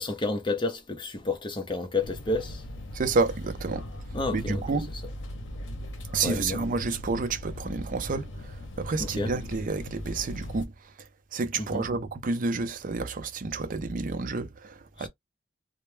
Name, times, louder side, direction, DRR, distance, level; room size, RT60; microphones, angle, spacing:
voice 1, 0.0-2.6 4.1-4.6 6.2-6.6 9.0-9.3 11.6-11.9 15.0-15.1, left 2 dB, 25° left, 0.6 m, -30 dB
sound 1, 2.0-10.7, equal, 85° left, 0.6 m, -39 dB
voice 2, 2.9-3.9 4.3-4.9 6.1-10.9 11.3-15.1, right 3 dB, 45° right, 0.5 m, -30 dB
2.1 x 2.0 x 3.1 m
head